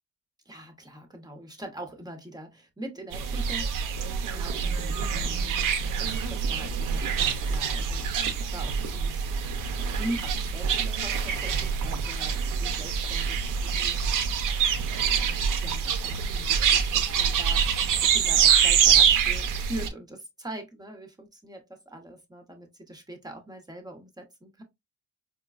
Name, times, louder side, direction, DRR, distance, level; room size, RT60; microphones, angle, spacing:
voice 1, 0.4-5.7 6.0-9.3 9.6-14.4 14.8-24.6, right 1 dB, 10° right, 1.0 m, -42 dB
sound 1, 3.1-19.9, right 7 dB, 75° right, 0.7 m, -25 dB
4.5 x 2.2 x 2.3 m
cardioid pair, 90°, 32 cm